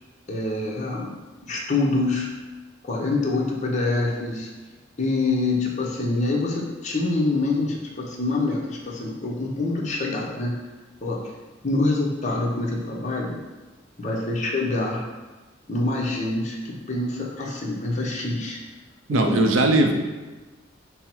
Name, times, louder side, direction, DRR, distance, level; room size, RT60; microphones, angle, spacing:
voice 1, 0.3-1.1 1.4-2.3 2.8-4.5 5.0-10.6 11.0-11.3 11.6-13.4 14.0-15.1 15.7-18.6 19.1-19.4, left 2 dB, 35° left, -2 dB, 0.7 m, -25 dB
voice 2, 19.1-19.9, right 2 dB, 75° right, 4 dB, 0.5 m, -19 dB
5.6 x 2.0 x 4.3 m, 1.2 s
head